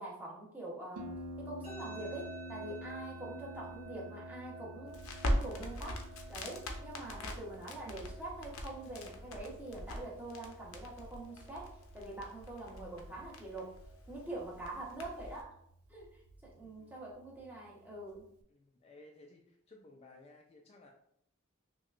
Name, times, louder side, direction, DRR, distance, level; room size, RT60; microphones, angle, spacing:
voice 1, 0.0-5.0 5.2-6.0 6.3-11.7 11.9-13.8 14.1-15.6 15.9-18.3, right 2 dB, 10° right, -4 dB, 0.8 m, -45 dB
Harp, 1.0-18.4, equal, 80° right, 0.4 m, -51 dB
sound 1, 1.6-14.6, right 2 dB, 30° right, 1.2 m, -54 dB
Crackle, 4.9-15.4, equal, 70° left, 0.6 m, -41 dB
voice 2, 16.6-16.9 18.5-20.9, left 2 dB, 30° left, 1 dB, 0.3 m, -58 dB
5.6 x 2.2 x 2.4 m, 0.72 s
head